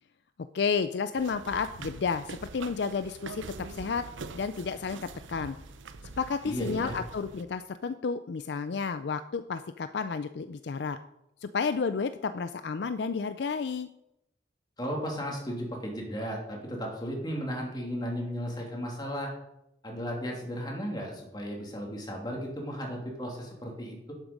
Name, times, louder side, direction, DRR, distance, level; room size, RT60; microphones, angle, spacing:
voice 1, 0.5-4.0 4.3-5.6 6.2-11.0 11.4-13.9, left 5 dB, 65° left, 11 dB, 0.4 m, -31 dB
sound 1, 1.2-7.4, right 4 dB, 90° right, 0.7 m, -44 dB
voice 2, 6.4-7.0 14.8-19.3 19.8-24.1, equal, 20° left, 0 dB, 2.7 m, -35 dB
12.0 x 7.4 x 5.2 m, 0.85 s
head